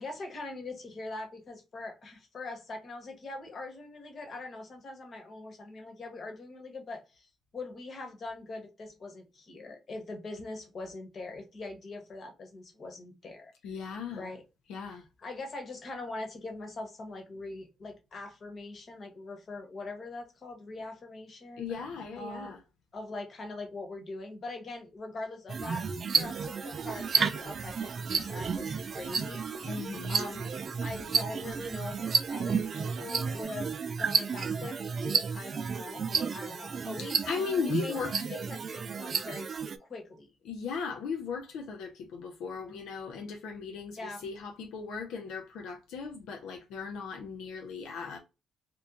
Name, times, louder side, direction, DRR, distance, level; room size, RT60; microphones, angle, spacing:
voice 1, 0.0-14.4 14.8-21.7 22.2-22.5 22.9-25.9 26.2-30.5 30.8-32.0 32.3-37.2 37.6-39.5 39.8-40.3 44.0-44.3, left 2 dB, 45° left, 1.2 m, -42 dB
voice 2, 13.6-14.3 14.7-15.0 21.6-22.6 29.7-30.2 37.0-38.3 40.5-48.2, left 5 dB, 90° left, 0.6 m, -37 dB
sound 1, 25.5-39.8, right 5 dB, 45° right, 0.4 m, -32 dB
sound 2, 26.1-33.4, right 6 dB, 85° right, 0.6 m, -50 dB
3.0 x 2.3 x 3.7 m
cardioid pair, 90°, 0 cm